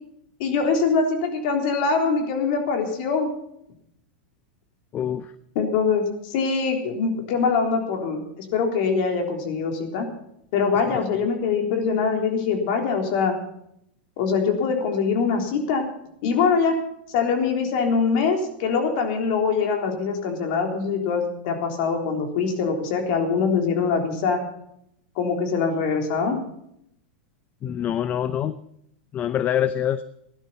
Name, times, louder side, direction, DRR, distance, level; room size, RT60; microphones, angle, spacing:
voice 1, 0.4-3.3 5.6-10.1 10.5-13.4 14.2-15.9 16.2-16.8 17.1-24.4 25.2-26.4, left 5 dB, 60° left, 3 dB, 3.7 m, -23 dB
voice 2, 4.9-5.3 27.6-28.5 29.1-30.0, left 10 dB, 30° left, 13 dB, 0.7 m, -25 dB
16.5 x 12.0 x 5.8 m, 0.75 s
hypercardioid pair, 115°, 6 cm